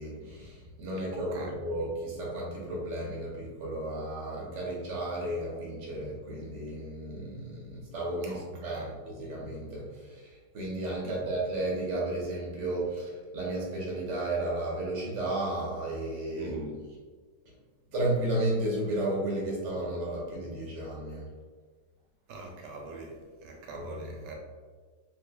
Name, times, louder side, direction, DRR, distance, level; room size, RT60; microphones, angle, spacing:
voice 1, 0.0-16.6 17.9-21.3 23.7-24.1, right 1 dB, 50° right, -4 dB, 1.0 m, -33 dB
voice 2, 1.1-1.5 8.2-8.9 11.0-11.2 16.3-16.8 22.3-24.3, right 2 dB, 75° right, 1 dB, 1.2 m, -43 dB
3.3 x 3.1 x 2.3 m, 1.5 s
omnidirectional pair, 2.0 m